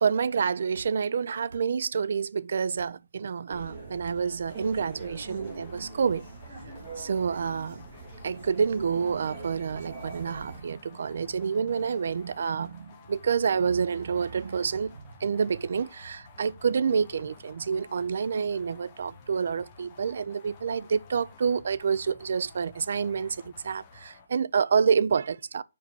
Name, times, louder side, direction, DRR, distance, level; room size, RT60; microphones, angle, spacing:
voice 1, 0.0-6.3 7.0-7.8 8.2-25.6, right 6 dB, 45° right, 0.3 m, -28 dB
sound 1, 0.7-1.0 1.5-1.7 2.7-3.0 4.0-4.3 5.7-5.9, right 4 dB, 65° right, 0.9 m, -50 dB
sound 2, 3.5-10.6, right 3 dB, 20° right, 2.0 m, -43 dB
sound 3, 4.5-24.3, left 5 dB, 20° left, 0.8 m, -52 dB
5.0 x 4.6 x 5.2 m
hypercardioid pair, 175°, 0 cm